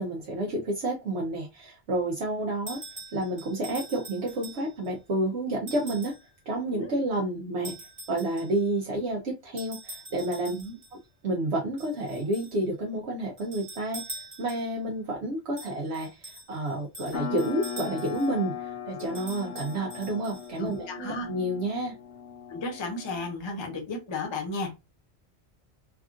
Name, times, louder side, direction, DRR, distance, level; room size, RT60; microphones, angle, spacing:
voice 1, 0.0-2.8 3.1-6.1 6.5-7.7 8.1-10.6 11.2-14.0 14.4-21.9, right 1 dB, 70° right, 1.0 m, -30 dB
sound 1, 2.7-4.9 5.7-6.3 7.6-8.7 9.6-11.0 11.8-12.6 13.4-14.8 15.6-18.3 19.0-20.8, right 1 dB, 30° right, 1.1 m, -44 dB
sound 2, 17.1-23.3, left 7 dB, 75° left, 1.0 m, -39 dB
voice 2, 20.6-21.3 22.5-24.7, left 3 dB, 30° left, 0.7 m, -34 dB
3.4 x 2.4 x 2.4 m
omnidirectional pair, 1.2 m